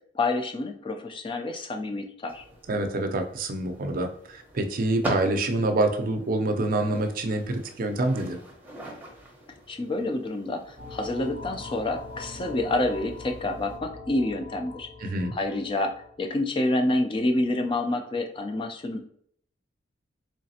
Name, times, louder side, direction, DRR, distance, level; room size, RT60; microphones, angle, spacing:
voice 1, 0.1-2.4 9.7-19.1, left 2 dB, 30° left, 6 dB, 0.4 m, -28 dB
sound 1, 2.3-13.8, right 1 dB, 10° right, 0.7 m, -42 dB
voice 2, 2.7-8.4 15.0-15.3, right 2 dB, 50° right, 5 dB, 0.5 m, -26 dB
sound 2, 10.8-16.3, left 3 dB, 60° left, 1.3 m, -42 dB
3.9 x 3.2 x 2.7 m, 0.65 s
head